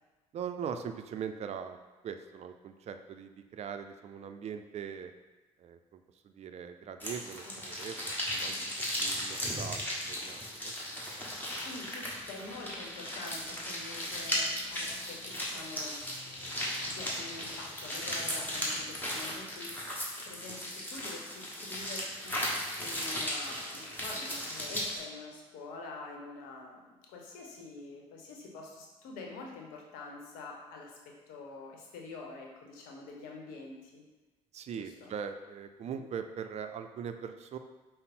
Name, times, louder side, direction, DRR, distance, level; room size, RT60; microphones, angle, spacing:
voice 1, 0.3-5.1 5.6-8.6 9.0-10.7 34.5-37.6, right 7 dB, 50° right, 8 dB, 0.4 m, -41 dB
sound 1, 7.0-25.0, equal, 15° left, 1.4 m, -36 dB
voice 2, 11.4-16.0 16.8-34.1 34.7-35.1 35.9-36.0, left 3 dB, 80° left, 0 dB, 0.8 m, -46 dB
sound 2, 12.1-15.6 16.0-19.0, left 2 dB, 45° left, 0.9 m, -57 dB
5.2 x 2.0 x 4.2 m, 1.2 s
hypercardioid pair, 60°, 15 cm